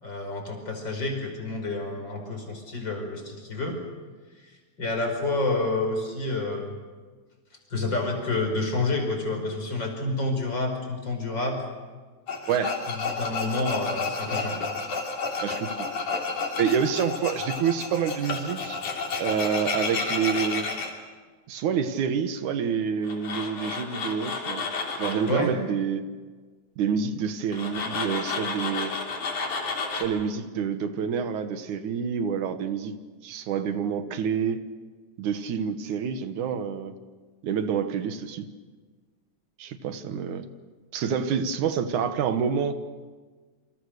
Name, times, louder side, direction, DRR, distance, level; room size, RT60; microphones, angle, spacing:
voice 1, 0.0-3.8 4.8-6.8 7.7-11.6 12.9-14.6 25.3-25.5, left 2 dB, 35° left, 3 dB, 5.6 m, -29 dB
Tools, 12.3-20.9 23.0-25.3 27.5-30.0, left 4 dB, 85° left, 4.8 m, -31 dB
voice 2, 12.5-12.8 15.4-15.9 16.6-18.8 19.2-20.7 21.5-24.7 25.0-26.0 26.8-29.0 29.9-33.0 33.2-34.6 35.2-36.9 37.4-38.5 39.6-40.5 40.9-42.7, right 7 dB, 85° right, 9 dB, 2.8 m, -27 dB
28.0 x 26.0 x 6.6 m, 1.4 s
omnidirectional pair, 3.4 m